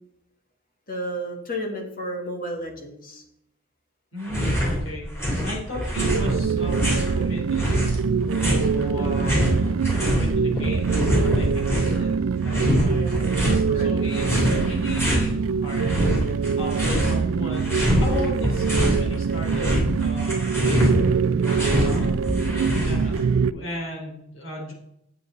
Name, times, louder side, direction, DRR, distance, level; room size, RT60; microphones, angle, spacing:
voice 1, 0.9-3.2 9.0-9.4 12.8-13.2 13.6-13.9, equal, 45° left, 3 dB, 1.9 m, -33 dB
voice 2, 4.1-7.8 8.4-9.4 10.0-13.1 13.7-16.0 16.6-21.1 21.7-22.1 22.8-24.7, left 1 dB, 70° left, -2 dB, 3.8 m, -35 dB
sound 1, 4.2-4.8 5.0-7.1 7.6-10.3 10.5-12.0 12.5-13.6 14.1-15.3 15.7-17.2 17.5-19.0 19.3-23.2, equal, 10° left, 3.0 m, -24 dB
sound 2, 6.0-23.5, right 6 dB, 70° right, 0.3 m, -24 dB
8.5 x 8.0 x 4.1 m, 0.78 s
head